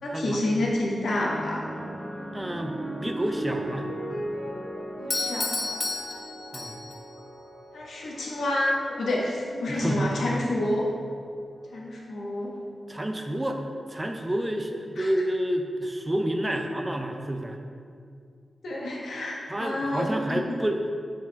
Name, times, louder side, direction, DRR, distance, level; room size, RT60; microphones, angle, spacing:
voice 1, 0.0-1.6 5.0-5.8 7.7-10.9 11.7-12.5 15.0-15.1 18.6-20.4, left 1 dB, 75° left, -3 dB, 1.1 m, -29 dB
sound 1, 1.1-9.7 10.6-11.0, right 1 dB, 15° left, 1.0 m, -38 dB
voice 2, 2.3-3.9 6.5-6.8 9.7-10.2 12.9-17.6 19.5-20.8, right 1 dB, 15° right, 4 dB, 0.4 m, -29 dB
Doorbell, 5.1-7.1, left 3 dB, 35° left, 0.6 m, -31 dB
4.7 x 4.6 x 4.5 m, 2.3 s
wide cardioid pair, 160°, 0 cm